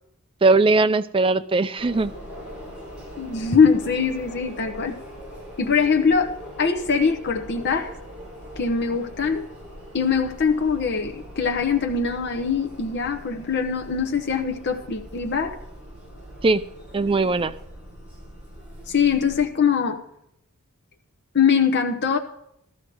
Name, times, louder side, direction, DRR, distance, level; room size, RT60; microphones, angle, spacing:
voice 1, 0.4-2.1 16.4-16.6 16.9-17.5, right 3 dB, 25° right, 12 dB, 0.4 m, -19 dB
sound 1, 1.8-19.4, equal, 5° right, 7.1 m, -42 dB
voice 2, 3.2-5.0 5.6-7.9 8.6-9.5 9.9-15.5 18.9-20.0 21.3-22.2, left 6 dB, 50° left, 3 dB, 0.9 m, -22 dB
14.5 x 13.0 x 4.7 m, 0.76 s
head